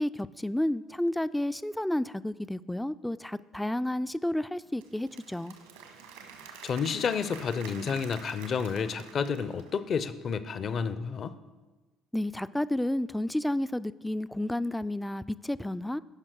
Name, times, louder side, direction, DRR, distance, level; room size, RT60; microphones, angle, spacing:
voice 1, 0.0-5.5 12.1-16.0, left 1 dB, 5° left, 16 dB, 0.3 m, -31 dB
Applause / Crowd, 4.6-10.0, right 6 dB, 75° right, 1.2 m, -48 dB
voice 2, 6.6-11.4, left 6 dB, 45° left, 13 dB, 0.6 m, -30 dB
16.5 x 5.8 x 4.6 m, 1.2 s
figure-of-eight pair, 55°, 0 cm